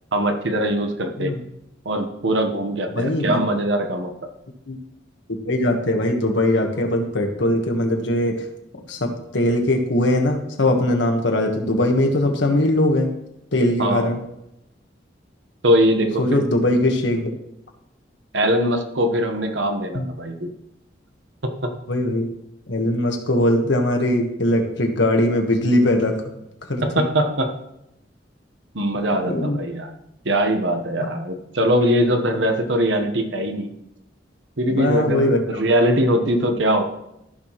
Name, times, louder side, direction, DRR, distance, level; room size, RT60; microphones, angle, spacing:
voice 1, 0.1-1.3 1.8-4.1 13.8-14.2 15.6-16.4 18.3-20.5 21.4-21.7 26.8-27.5 28.7-29.9 30.2-33.7 34.6-36.8, equal, 80° right, 5 dB, 1.1 m, -21 dB
voice 2, 3.0-3.4 4.7-4.8 5.4-8.4 8.9-13.1 13.5-14.2 16.2-17.3 19.9-20.0 21.9-22.3 22.7-26.2 26.7-26.8 29.2-29.6 34.7-35.4 35.8-35.9, left 1 dB, 70° left, 3 dB, 1.4 m, -20 dB
14.0 x 5.8 x 3.1 m, 0.83 s
head